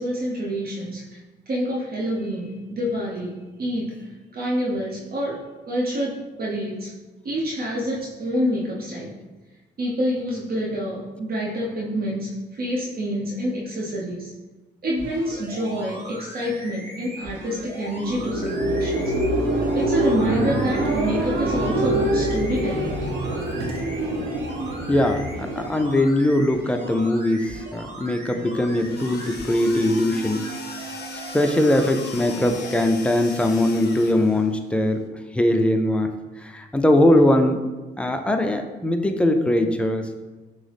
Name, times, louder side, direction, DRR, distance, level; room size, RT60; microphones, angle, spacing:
voice 1, 0.0-6.9 7.2-9.2 9.8-14.3 14.8-19.1 19.7-23.1, equal, 50° right, -4 dB, 0.8 m, -27 dB
sound 1, 15.0-32.8 33.4-33.5, right 1 dB, 30° right, 1.4 m, -39 dB
sound 2, 17.8-26.5, right 1 dB, 80° right, 0.7 m, -25 dB
voice 2, 24.9-30.5 31.3-35.0 35.3-36.1 36.4-37.7 38.0-40.1, left 1 dB, 5° left, 5 dB, 0.4 m, -21 dB
sound 3, 28.6-34.5, left 2 dB, 55° left, 0.6 m, -38 dB
6.1 x 2.1 x 3.4 m, 1.2 s
cardioid pair, 90°, 20 cm